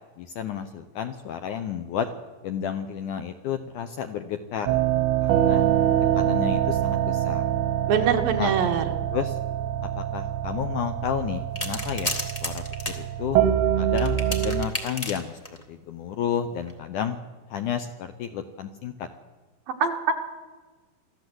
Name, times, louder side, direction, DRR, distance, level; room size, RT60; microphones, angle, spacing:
voice 1, 0.2-2.1 2.4-4.8 5.2-5.7 6.1-7.4 8.4-8.5 9.1-9.3 10.0-12.6 13.0-13.4 13.8-15.3 15.7-17.2 17.5-19.1, left 8 dB, 75° left, 8 dB, 1.9 m, -31 dB
sound 1, 4.7-14.7, right 11 dB, 85° right, 3.2 m, -25 dB
voice 2, 7.9-8.8 19.8-20.1, right 7 dB, 70° right, 4 dB, 3.1 m, -23 dB
sound 2, 11.5-13.0 14.0-15.6 16.6-16.7, left 1 dB, 50° left, 0.4 m, -32 dB
24.0 x 14.5 x 7.9 m, 1.3 s
omnidirectional pair, 4.5 m